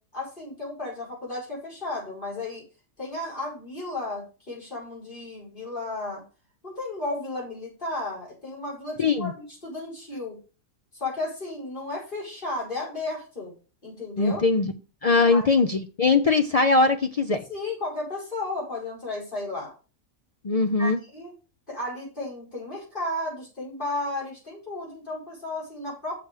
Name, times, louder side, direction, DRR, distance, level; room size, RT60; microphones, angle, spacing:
voice 1, 0.1-2.7 3.0-6.2 6.6-10.4 10.9-13.5 13.8-14.4 15.3-15.5 17.5-19.7 20.8-21.3 21.7-26.2, left 2 dB, 35° left, -4 dB, 4.8 m, -33 dB
voice 2, 9.0-9.3 14.2-14.7 15.0-17.4 20.4-21.0, left 3 dB, 75° left, 7 dB, 0.3 m, -21 dB
6.7 x 6.7 x 4.9 m, 0.33 s
omnidirectional pair, 1.5 m